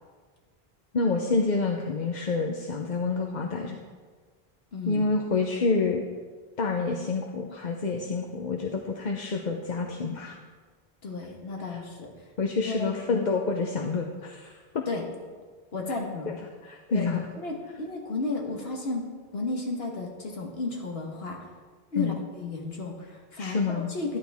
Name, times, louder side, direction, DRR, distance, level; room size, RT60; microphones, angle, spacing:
voice 1, 0.9-3.8 4.9-6.0 6.6-10.4 11.6-11.8 12.4-14.8 16.3-16.4 16.6-17.2 22.0-22.1 23.4-23.9, left 4 dB, 50° left, 2 dB, 0.9 m, -28 dB
voice 2, 4.7-5.1 11.0-12.1 12.6-12.9 14.9-15.1 15.7-16.3 16.9-17.1 17.4-19.0 19.3-21.4 21.9-24.2, left 3 dB, 80° left, 0 dB, 1.7 m, -33 dB
13.0 x 11.5 x 3.6 m, 1.5 s
omnidirectional pair, 1.0 m